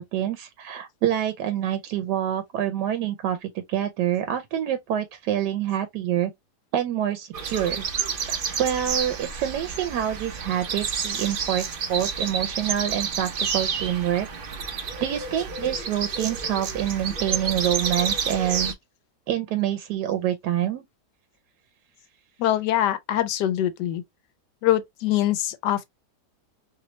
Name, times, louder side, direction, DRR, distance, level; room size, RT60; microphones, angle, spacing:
voice 1, 0.0-6.3 6.7-7.8 8.3-14.3 15.0-18.7 19.3-20.8, right 11 dB, 90° right, 1.2 m, -26 dB
sound 1, 7.3-18.7, right 6 dB, 60° right, 0.5 m, -30 dB
voice 2, 22.4-24.0 24.6-25.8, left 12 dB, 85° left, 1.2 m, -23 dB
3.1 x 3.0 x 2.9 m
omnidirectional pair, 1.8 m